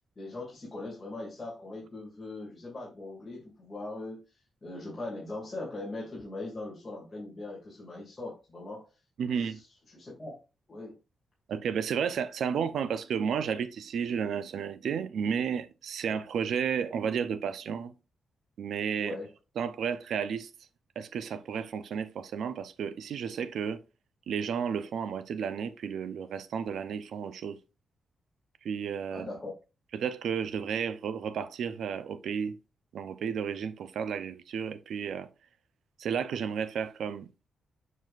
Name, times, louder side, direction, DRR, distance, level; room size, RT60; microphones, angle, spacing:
voice 1, 0.2-4.2 4.6-8.9 9.4-10.4 10.7-11.0 19.0-19.3 29.1-29.5, left 2 dB, 20° left, 2.4 m, -40 dB
voice 2, 9.2-9.6 11.5-17.9 18.6-19.2 19.6-20.5 21.0-23.8 24.3-27.6 28.6-29.3 29.9-32.6 32.9-35.3 36.0-37.3, right 7 dB, 75° right, 0.6 m, -32 dB
7.3 x 6.0 x 2.5 m
wide cardioid pair, 155°, 0 cm